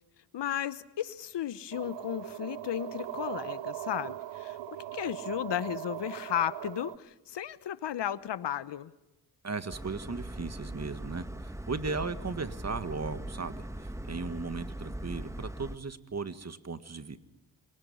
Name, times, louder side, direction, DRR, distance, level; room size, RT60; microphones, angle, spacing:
voice 1, 0.3-8.9, left 10 dB, 60° left, 17 dB, 1.0 m, -34 dB
sound 1, 1.7-7.0, right 13 dB, 65° right, 0.8 m, -39 dB
voice 2, 9.4-17.2, right 4 dB, 35° right, 11 dB, 1.8 m, -37 dB
sound 2, 9.7-15.8, right 1 dB, 5° right, 1.5 m, -40 dB
27.0 x 18.5 x 5.6 m, 0.99 s
supercardioid pair, 45°, 47 cm